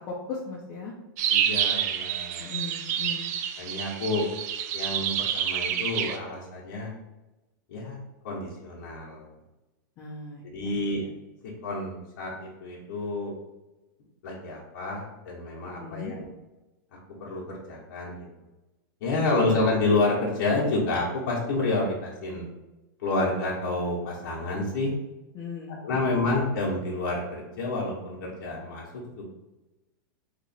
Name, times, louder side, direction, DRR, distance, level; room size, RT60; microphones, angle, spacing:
voice 1, 0.1-0.9 2.4-3.3 10.0-10.7 11.0-11.1 15.8-16.1 25.3-26.3, left 4 dB, 30° left, -5 dB, 0.7 m, -38 dB
sound 1, 1.2-6.2, right 9 dB, 50° right, 0.3 m, -28 dB
voice 2, 1.3-2.5 3.6-4.3 4.7-6.9 7.7-8.0 8.2-9.3 10.4-11.0 11.4-13.3 14.2-16.3 16.9-18.2 19.0-22.4 23.0-24.9 25.8-29.3, left 2 dB, 55° left, -4 dB, 1.0 m, -29 dB
2.9 x 2.5 x 4.1 m, 1.1 s
supercardioid pair, 155°, 11 cm